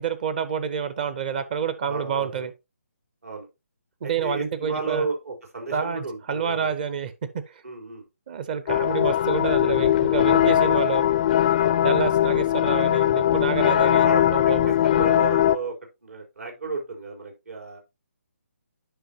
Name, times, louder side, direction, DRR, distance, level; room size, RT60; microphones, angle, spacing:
voice 1, 0.0-2.5 4.0-5.1 5.7-7.1 7.5-7.6 8.3-11.1 11.8-14.7, right 7 dB, 35° right, 0.6 m, -28 dB
voice 2, 1.9-2.5 3.2-3.5 4.0-6.8 7.6-8.1 11.6-11.8 14.0-15.7 16.0-17.8, right 4 dB, 80° right, 4.1 m, -33 dB
sound 1, 8.7-15.6, left 11 dB, 35° left, 0.3 m, -20 dB
10.0 x 5.5 x 2.8 m
figure-of-eight pair, 150°, 8 cm